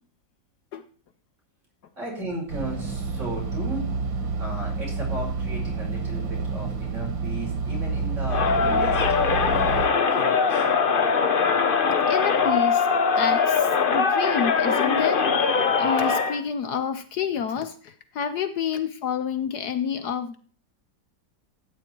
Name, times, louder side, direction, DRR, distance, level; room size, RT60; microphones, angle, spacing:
voice 1, 2.0-3.8 4.4-10.7, right 2 dB, 40° right, -2 dB, 5.4 m, -36 dB
sound 1, 2.5-9.9, right 4 dB, 90° right, 2.2 m, -29 dB
Crowd, 8.3-16.4, left 5 dB, 40° left, 0.8 m, -21 dB
voice 2, 12.1-12.9 13.2-20.4, left 7 dB, 65° left, 10 dB, 1.3 m, -29 dB
13.5 x 8.9 x 4.5 m, 0.43 s
omnidirectional pair, 1.9 m